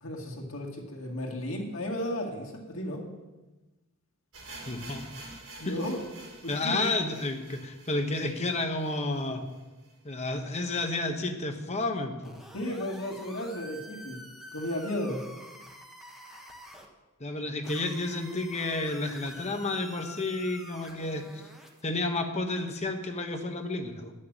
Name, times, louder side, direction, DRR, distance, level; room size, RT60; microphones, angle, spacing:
voice 1, 0.0-3.0 5.6-6.0 6.4-6.9 12.5-14.2 14.5-15.2, left 1 dB, 70° left, 0 dB, 2.3 m, -34 dB
sound 1, 4.3-10.3 10.5-10.6 10.9-11.0 11.5-11.6, right 2 dB, 65° right, 3.6 m, -48 dB
voice 2, 4.7-5.3 5.6-5.8 6.5-9.4 10.0-12.3 17.2-21.4 21.8-24.1, left 2 dB, 30° left, 5 dB, 1.2 m, -31 dB
sound 2, 12.2-16.9 17.6-21.8, equal, ahead, 1.3 m, -48 dB
10.5 x 6.5 x 9.0 m, 1.1 s
head